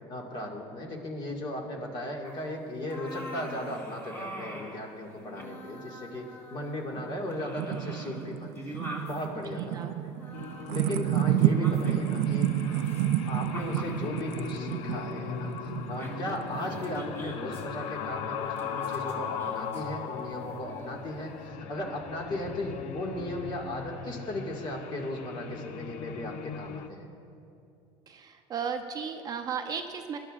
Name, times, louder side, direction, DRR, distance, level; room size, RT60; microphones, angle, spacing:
voice 1, 0.1-8.5 9.0-10.1 10.7-12.5 13.3-27.1, left 1 dB, 40° left, 0 dB, 2.0 m, -36 dB
sound 1, 2.2-2.4 2.8-4.8 5.1-7.0 7.3-9.2 10.2-12.1 12.6-14.5 14.9-15.1 15.6-15.7 16.0-17.6 18.4-19.8 20.7-21.0, equal, 20° left, 2.2 m, -43 dB
sound 2, 7.0-17.1, right 12 dB, 80° right, 0.4 m, -30 dB
voice 2, 9.5-9.9 28.1-30.2, right 6 dB, 30° right, 5 dB, 0.6 m, -35 dB
sound 3, 10.3-26.9, left 7 dB, 65° left, 0.7 m, -39 dB
21.0 x 11.5 x 2.5 m, 2.6 s
cardioid pair, 135°, 12 cm